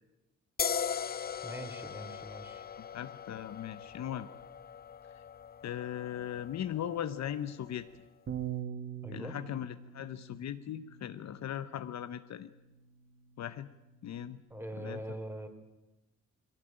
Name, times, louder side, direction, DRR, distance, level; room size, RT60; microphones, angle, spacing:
sound 1, 0.6-7.9, left 7 dB, 30° left, 0.6 m, -40 dB
voice 1, 1.4-2.6 9.0-9.4 14.5-15.5, right 1 dB, 5° right, 8 dB, 3.3 m, -42 dB
voice 2, 2.8-4.3 5.6-7.9 9.1-12.5 13.4-13.7 14.0-14.4 14.8-15.0, left 10 dB, 60° left, 12 dB, 1.0 m, -38 dB
Bass guitar, 8.3-14.5, right 9 dB, 40° right, 1.5 m, -45 dB
20.0 x 17.0 x 8.9 m, 1.0 s
cardioid pair, 90°, 30 cm